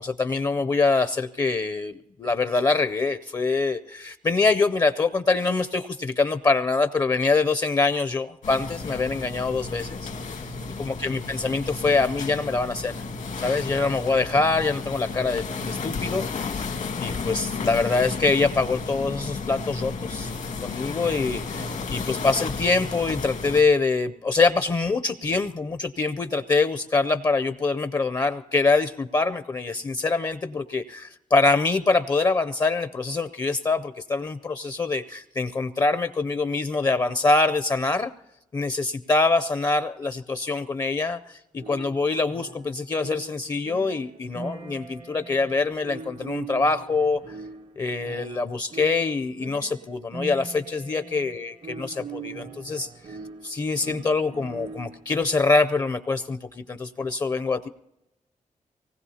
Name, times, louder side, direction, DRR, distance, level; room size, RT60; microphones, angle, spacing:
voice 1, 0.0-10.0 10.8-13.0 13.4-16.3 16.6-16.7 17.0-20.3 20.6-38.1 38.5-47.3 47.8-51.5 52.0-53.2 53.4-57.7, left 3 dB, 30° left, 10 dB, 0.5 m, -24 dB
sound 1, 8.4-23.6, left 4 dB, 80° left, 1.9 m, -33 dB
sound 2, 41.6-55.1, right 4 dB, 45° right, 0.6 m, -41 dB
24.5 x 19.0 x 2.8 m, 0.90 s
wide cardioid pair, 160°, 13 cm